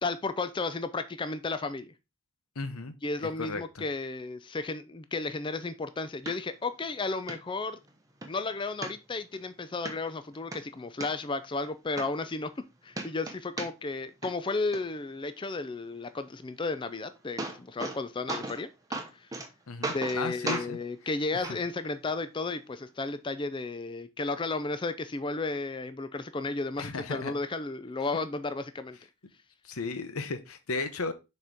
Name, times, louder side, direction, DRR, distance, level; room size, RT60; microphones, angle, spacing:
voice 1, 0.0-1.9 3.0-7.8 8.2-12.5 12.8-18.7 19.1-19.3 19.9-29.0, left 3 dB, 20° left, 0.4 m, -33 dB
voice 2, 2.6-2.9 3.4-3.8 19.7-20.8 21.3-21.6 26.8-27.3 29.6-31.1, left 3 dB, 75° left, 0.9 m, -35 dB
sound 1, 6.3-6.4 6.8-6.9 7.3-7.4 7.8-8.3 8.8-9.4 9.9-10.0 10.3-11.1 11.6-11.7 12.0-12.7 12.9-14.0 14.2-14.8 16.8-16.9 17.2-18.0 18.3-18.6 18.9-19.5 19.8-20.2 20.5-20.7 21.4-21.6 22.5-22.6, right 2 dB, 15° right, 0.9 m, -35 dB
6.4 x 4.3 x 3.5 m
head